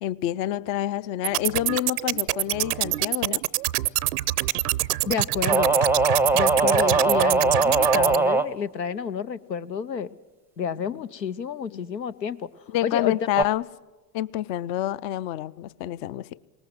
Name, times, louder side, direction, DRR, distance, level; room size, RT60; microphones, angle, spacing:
voice 1, 0.0-3.4 11.7-11.9 12.7-13.6 14.1-16.3, left 13 dB, 45° left, 0.6 m, -28 dB
sound 1, 1.2-8.2, right 17 dB, 70° right, 0.7 m, -26 dB
voice 2, 5.1-5.8 6.3-10.1 10.6-12.5 12.8-13.2, left 7 dB, 90° left, 0.7 m, -30 dB
sound 2, 5.5-8.5 13.4-13.5, right 3 dB, 5° right, 0.6 m, -21 dB
21.0 x 19.0 x 7.7 m
figure-of-eight pair, 70°, 49 cm